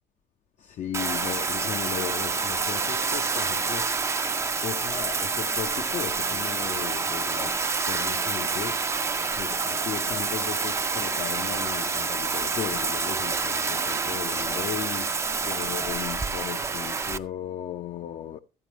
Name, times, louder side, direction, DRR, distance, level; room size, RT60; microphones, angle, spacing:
voice 1, 0.6-4.2 4.6-7.6 7.8-9.0 9.3-18.4, left 10 dB, 45° left, 0.5 m, -36 dB
Bathtub (filling or washing), 0.9-17.2, right 4 dB, 15° right, 0.4 m, -28 dB
12.5 x 8.1 x 4.0 m
cardioid pair, 150°, 17 cm